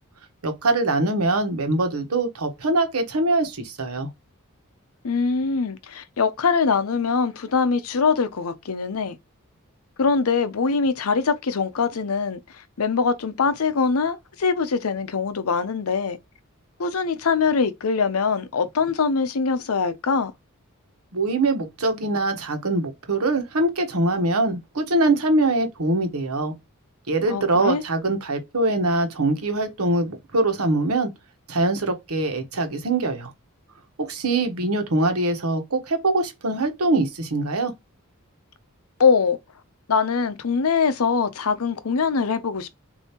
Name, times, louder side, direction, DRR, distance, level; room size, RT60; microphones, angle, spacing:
voice 1, 0.4-4.1 21.1-26.5 27.1-31.1 31.5-33.3 34.1-37.7, right 2 dB, 85° right, 1.1 m, -23 dB
voice 2, 5.0-9.2 10.0-16.2 16.8-20.3 27.3-27.8 39.0-39.4 39.9-42.8, left 5 dB, 80° left, 0.6 m, -23 dB
6.6 x 2.7 x 2.9 m
head